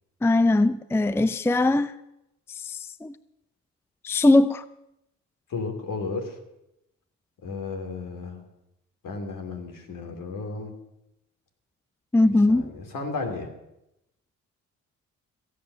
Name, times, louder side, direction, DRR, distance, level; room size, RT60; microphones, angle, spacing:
voice 1, 0.2-1.9 2.5-3.2 4.0-4.6 12.1-12.7, left 2 dB, 5° left, 16 dB, 0.5 m, -21 dB
voice 2, 5.5-6.4 7.4-8.4 9.0-10.7 12.5-13.5, left 4 dB, 60° left, 4 dB, 2.8 m, -33 dB
15.0 x 8.7 x 6.7 m, 0.87 s
hypercardioid pair, 50°, 36 cm